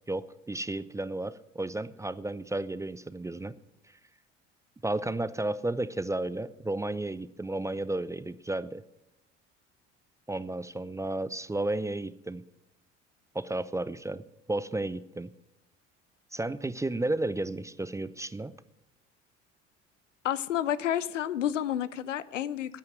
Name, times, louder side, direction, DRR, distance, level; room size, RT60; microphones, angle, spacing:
voice 1, 0.1-3.6 4.8-8.8 10.3-12.4 13.3-15.3 16.3-18.5, right 2 dB, 10° right, 17 dB, 0.4 m, -33 dB
voice 2, 20.2-22.8, left 11 dB, 85° left, 17 dB, 0.6 m, -30 dB
9.6 x 9.1 x 9.6 m, 0.90 s
hypercardioid pair, 60°, 36 cm